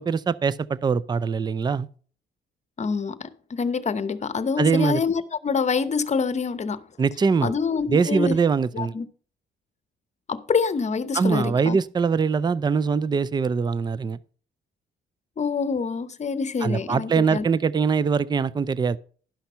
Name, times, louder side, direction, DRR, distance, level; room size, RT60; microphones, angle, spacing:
voice 1, 0.0-1.9 4.6-5.0 7.0-7.5 7.9-8.9 11.1-14.2 16.6-19.0, right 5 dB, 20° right, 0.4 m, -22 dB
voice 2, 2.8-6.8 7.4-8.4 8.7-9.1 10.3-11.8 15.4-17.5, left 5 dB, 35° left, 0.9 m, -26 dB
11.5 x 5.8 x 5.5 m
cardioid pair, 90°, 20 cm